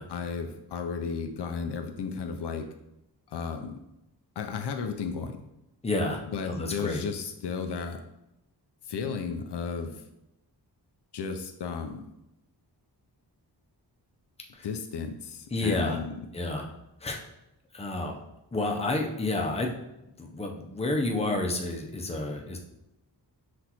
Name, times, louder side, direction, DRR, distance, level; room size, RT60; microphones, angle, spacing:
voice 1, 0.1-2.7 3.3-3.8 4.4-5.5 6.3-8.0 8.9-10.0 11.1-12.1 14.6-16.1, left 5 dB, 75° left, 6 dB, 0.5 m, -34 dB
voice 2, 5.8-7.0 14.5-14.7 15.5-16.0 16.3-16.7 17.0-17.2 17.7-18.2 18.5-19.7 20.2-22.6, left 2 dB, 15° left, 1 dB, 0.6 m, -30 dB
6.0 x 2.5 x 2.9 m, 0.88 s
wide cardioid pair, 100°, 41 cm